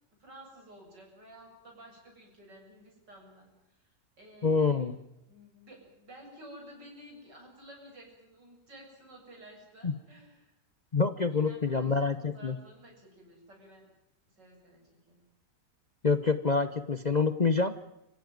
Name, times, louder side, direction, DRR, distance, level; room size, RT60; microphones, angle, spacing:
voice 1, 0.2-3.5 3.8-3.9 4.2-4.9 5.3-10.5 11.3-13.9 14.4-14.8 15.1-15.2, equal, 90° right, 0 dB, 8.4 m, -52 dB
voice 2, 4.4-5.0 9.8-10.0 10.9-12.6 16.0-17.8, left 4 dB, 35° left, 10 dB, 0.7 m, -27 dB
26.5 x 15.5 x 9.4 m, 0.88 s
omnidirectional pair, 1.8 m